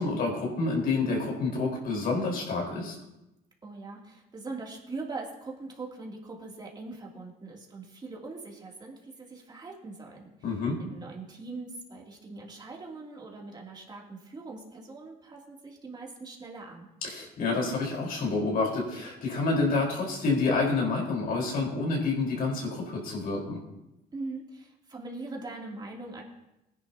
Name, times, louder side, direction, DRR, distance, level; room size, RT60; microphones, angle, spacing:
voice 1, 0.0-3.0 10.4-10.8 17.0-23.6, left 3 dB, 60° left, -1 dB, 4.6 m, -28 dB
voice 2, 3.6-10.3 10.8-16.9 24.1-26.2, right 3 dB, 25° right, -2 dB, 3.0 m, -41 dB
19.5 x 10.5 x 2.9 m, 0.91 s
cardioid pair, 110°, 17 cm